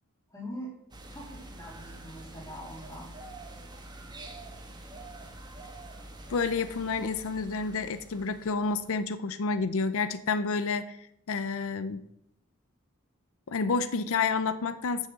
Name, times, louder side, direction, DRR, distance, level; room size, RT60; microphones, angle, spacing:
voice 1, 0.3-0.7 1.0-3.1, equal, 15° left, -3 dB, 3.2 m, -43 dB
sound 1, 0.9-9.0, right 2 dB, 20° right, 1.1 m, -46 dB
voice 2, 6.3-11.0 11.3-12.0 13.5-15.1, left 4 dB, 65° left, 12 dB, 0.5 m, -29 dB
6.5 x 6.4 x 7.5 m, 0.76 s
head